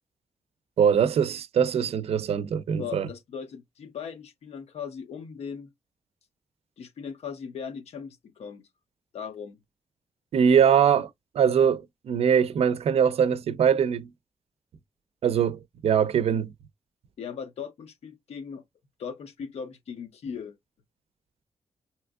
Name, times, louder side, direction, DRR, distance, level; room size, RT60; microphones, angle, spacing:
voice 1, 0.8-3.1 10.3-11.1 11.3-14.1 15.2-16.5, right 7 dB, 70° right, 0.4 m, -22 dB
voice 2, 2.8-5.7 6.8-8.6 9.1-9.6 17.2-18.6 19.0-20.5, left 6 dB, 75° left, 0.6 m, -38 dB
3.5 x 2.9 x 2.3 m
wide cardioid pair, 135°, 11 cm